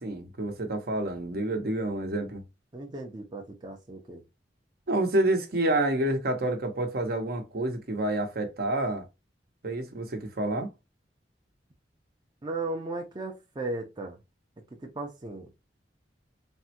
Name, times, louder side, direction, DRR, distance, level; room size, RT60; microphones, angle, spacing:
voice 1, 0.0-2.4 4.9-9.0 9.6-10.7, right 1 dB, 60° right, 0.7 m, -28 dB
voice 2, 2.7-4.2 12.4-14.2 14.7-15.5, right 2 dB, 25° right, 0.5 m, -36 dB
3.5 x 2.1 x 2.7 m
head